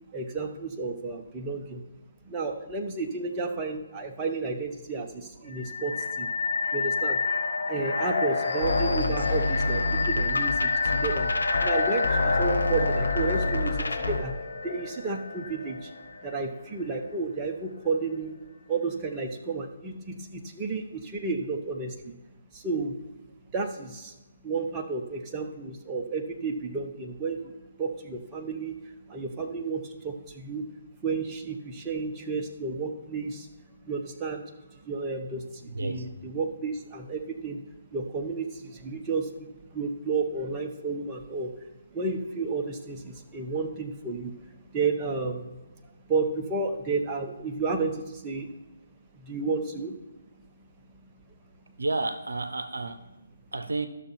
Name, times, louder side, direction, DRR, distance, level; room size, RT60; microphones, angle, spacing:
voice 1, 0.1-1.8 2.2-6.3 6.7-7.2 7.7-14.4 14.6-15.9 16.2-18.4 18.7-22.1 22.5-23.0 23.5-24.1 24.4-30.7 31.0-33.5 33.8-37.7 37.9-41.5 41.9-45.5 46.1-48.5 49.2-50.0, right 4 dB, 15° right, 1 dB, 1.0 m, -32 dB
sound 1, 5.5-16.3, left 4 dB, 50° left, 1.8 m, -29 dB
sound 2, 8.6-14.2, left 2 dB, 75° left, 1.2 m, -29 dB
voice 2, 35.7-36.1 51.8-53.0 53.5-53.9, right 3 dB, 70° right, 10 dB, 0.8 m, -31 dB
12.5 x 6.4 x 4.3 m, 1.1 s
figure-of-eight pair, 140°, 0 cm